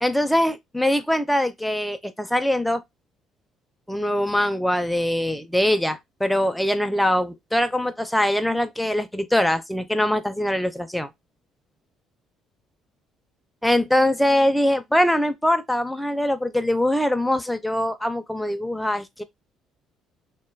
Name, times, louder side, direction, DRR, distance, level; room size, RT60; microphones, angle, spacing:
voice 1, 0.0-2.8 3.9-11.1 13.6-19.2, left 1 dB, ahead, 0.4 m, -22 dB
2.3 x 2.1 x 3.2 m
cardioid pair, 115°, 0 cm